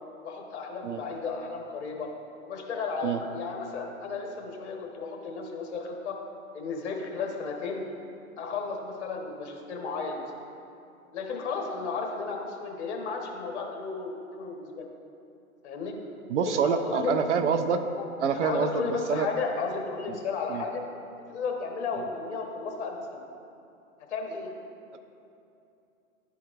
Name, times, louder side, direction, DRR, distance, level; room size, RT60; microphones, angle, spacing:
voice 1, 0.2-2.1 2.4-6.2 6.5-7.8 8.4-10.3 11.1-14.9 15.6-15.9 16.5-16.6 16.8-17.1 18.0-18.1 18.3-20.8 21.3-23.2 24.1-24.5, left 4 dB, 50° left, 1 dB, 1.2 m, -33 dB
voice 2, 16.3-17.8 18.2-19.3 20.1-20.2 20.5-20.6, right 6 dB, 55° right, 9 dB, 0.5 m, -26 dB
11.5 x 4.6 x 2.5 m, 2.7 s
hypercardioid pair, 145°, 43 cm